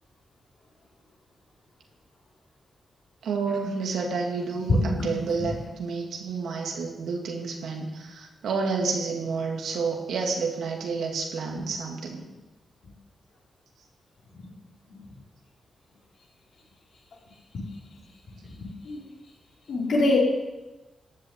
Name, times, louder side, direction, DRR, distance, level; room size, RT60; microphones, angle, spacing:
voice 1, 3.2-12.3, right 4 dB, 90° right, 1 dB, 2.5 m, -30 dB
voice 2, 4.7-5.4 14.4-14.5 17.5-17.6 18.8-19.0 19.7-20.2, left 2 dB, 70° left, -4 dB, 5.2 m, -24 dB
14.0 x 7.0 x 9.1 m, 1.1 s
cardioid pair, 105°, 0 cm